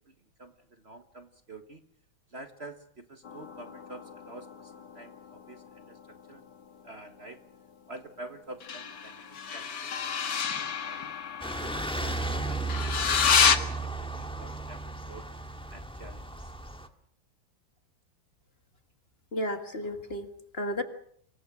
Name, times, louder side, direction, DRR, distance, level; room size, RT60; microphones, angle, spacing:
voice 1, 0.4-1.8 2.3-6.0 6.3-6.4 6.8-7.4 7.9-11.1 11.6-14.8 15.1-15.3 15.7-16.5, right 2 dB, 35° right, 7 dB, 1.7 m, -48 dB
sound 1, 3.2-6.3 8.6-13.6, left 6 dB, 60° left, 2.2 m, -30 dB
sound 2, 11.4-16.9, right 2 dB, 5° left, 1.6 m, -34 dB
voice 2, 19.3-20.8, equal, 35° left, 7 dB, 1.9 m, -33 dB
26.5 x 22.0 x 6.3 m, 0.65 s
omnidirectional pair, 2.1 m